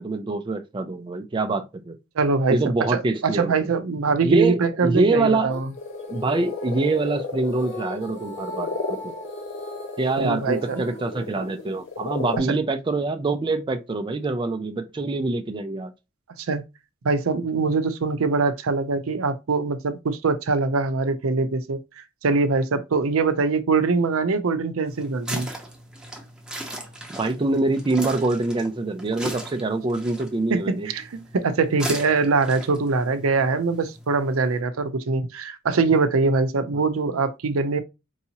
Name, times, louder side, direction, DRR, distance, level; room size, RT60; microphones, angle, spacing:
voice 1, 0.0-2.0 2.5-3.5 4.2-5.5 6.1-9.1 10.0-15.9 27.1-30.9, right 3 dB, 25° right, 0.4 m, -25 dB
voice 2, 2.2-2.6 2.9-5.7 10.2-10.8 12.4-12.6 16.4-16.6 17.0-25.5 30.5-37.8, right 4 dB, 80° right, 0.5 m, -23 dB
Female singing, 5.5-12.0, equal, 35° left, 0.8 m, -40 dB
sound 1, 5.8-12.4, left 4 dB, 65° left, 1.1 m, -33 dB
sound 2, 24.9-34.6, right 1 dB, 5° right, 0.8 m, -38 dB
4.6 x 2.8 x 2.8 m
head